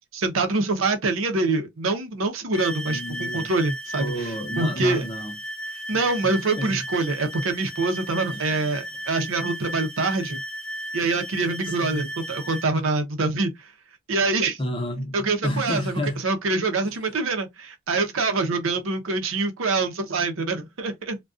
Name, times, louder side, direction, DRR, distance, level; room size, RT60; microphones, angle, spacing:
voice 1, 0.1-4.1 4.6-5.0 5.9-10.4 10.9-13.7 14.1-14.6 15.1-15.9 16.2-21.2, right 3 dB, 80° right, 0.6 m, -25 dB
sound 1, 2.5-12.7, right 1 dB, 70° left, 0.8 m, -35 dB
voice 2, 2.9-3.5 4.0-5.4 6.2-6.9 8.3-8.9 11.7-12.1 14.6-16.2 16.8-17.0, left 1 dB, 25° left, 0.6 m, -31 dB
2.3 x 2.2 x 2.4 m
head